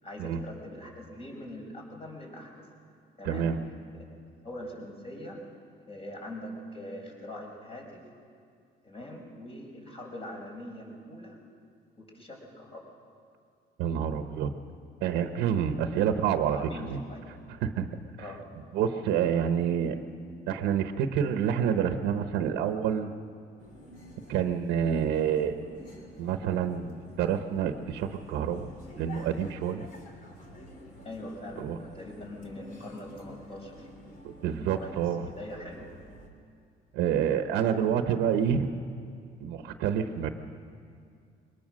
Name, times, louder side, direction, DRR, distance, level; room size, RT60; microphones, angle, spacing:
voice 1, 0.0-2.6 3.2-3.5 4.0-4.1 4.4-5.4 5.9-8.0 8.8-11.4 12.0-12.9 16.5-17.3 18.2-18.5 31.0-33.9 34.7-35.1 35.4-35.9, left 1 dB, 35° left, 0 dB, 5.2 m, -42 dB
voice 2, 3.2-3.6 13.8-14.5 15.0-17.0 17.6-17.9 18.2-18.3 18.7-20.0 20.5-23.1 24.3-25.5 26.2-29.9 31.6-31.8 34.2-35.2 36.9-38.7 39.4-40.3, right 8 dB, 90° right, 7 dB, 1.0 m, -28 dB
sound 1, 23.6-36.3, left 1 dB, 55° left, 3.4 m, -49 dB
22.5 x 20.5 x 6.4 m, 2.3 s
cardioid pair, 110°, 17 cm